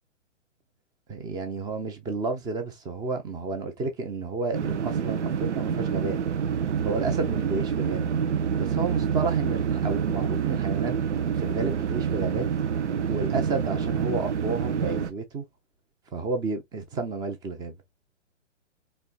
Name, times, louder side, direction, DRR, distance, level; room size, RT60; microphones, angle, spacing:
voice 1, 1.1-6.2 6.8-8.1 8.6-10.9 11.4-12.5 13.1-15.4 16.1-17.7, right 3 dB, 10° right, 0.6 m, -31 dB
sound 1, 4.5-15.1, right 7 dB, 70° right, 0.7 m, -27 dB
4.3 x 3.1 x 2.4 m
figure-of-eight pair, 125°, 37 cm